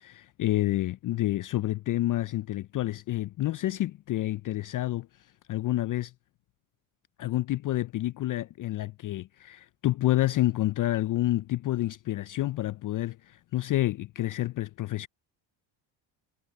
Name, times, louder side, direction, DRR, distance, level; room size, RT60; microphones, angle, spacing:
voice 1, 0.0-5.1 5.5-6.1 7.2-15.1, left 15 dB, 40° left, 0.4 m, -29 dB
supercardioid pair, 75°, 50 cm